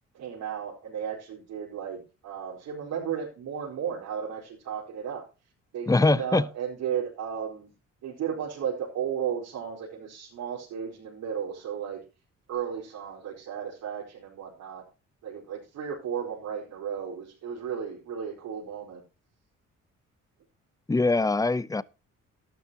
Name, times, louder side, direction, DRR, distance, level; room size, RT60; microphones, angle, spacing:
voice 1, 0.1-5.2 5.7-7.7 8.0-12.0 12.5-14.8 15.2-19.0, right 8 dB, 80° right, 4.6 m, -34 dB
voice 2, 5.9-6.5 20.9-21.8, left 3 dB, 10° left, 0.7 m, -23 dB
12.5 x 12.5 x 2.9 m
cardioid pair, 90°, 30 cm